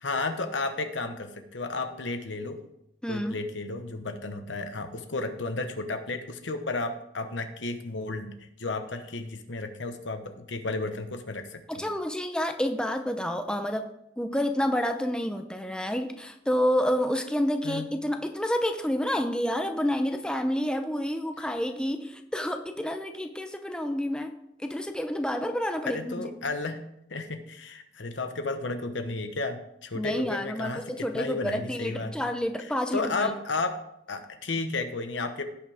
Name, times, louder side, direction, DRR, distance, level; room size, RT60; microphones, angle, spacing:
voice 1, 0.0-2.6 3.1-11.9 17.6-17.9 25.9-26.8 27.1-32.1 32.9-33.8 34.1-35.4, left 3 dB, 85° left, 7 dB, 1.1 m, -33 dB
voice 2, 3.0-3.4 11.7-13.9 14.2-24.3 24.6-26.3 29.9-33.3, equal, 5° left, 6 dB, 0.6 m, -29 dB
16.5 x 6.0 x 3.5 m, 0.78 s
head